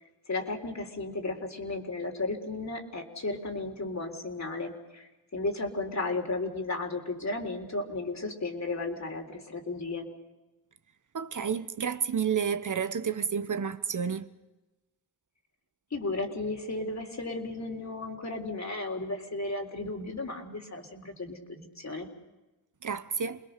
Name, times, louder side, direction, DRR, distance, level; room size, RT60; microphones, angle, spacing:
voice 1, 0.3-10.1 15.9-22.1, left 2 dB, 45° left, 4.0 m, -34 dB
voice 2, 11.1-14.3 22.8-23.4, right 7 dB, 55° right, 1.1 m, -30 dB
28.5 x 21.0 x 6.8 m
cardioid pair, 70°, 37 cm